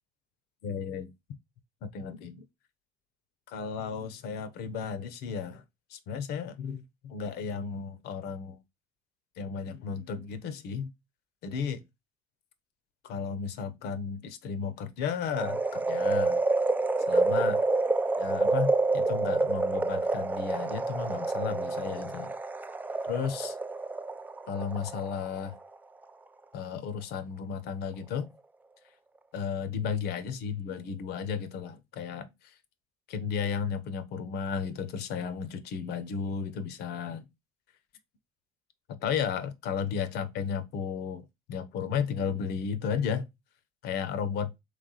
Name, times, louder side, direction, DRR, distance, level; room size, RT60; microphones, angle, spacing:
voice 1, 0.6-1.1 1.8-2.4 3.5-5.6 5.9-8.6 9.4-10.9 11.4-11.8 13.0-16.4 17.1-17.6 18.2-22.3 23.1-23.5 24.5-25.6 26.5-28.3 29.3-32.3 33.1-37.2 38.9-43.3 43.8-44.5, left 6 dB, 65° left, 0.8 m, -34 dB
sound 1, 15.3-25.6 26.0-26.1, right 3 dB, 10° right, 0.3 m, -28 dB
3.3 x 3.3 x 3.8 m
hypercardioid pair, 70°, 18 cm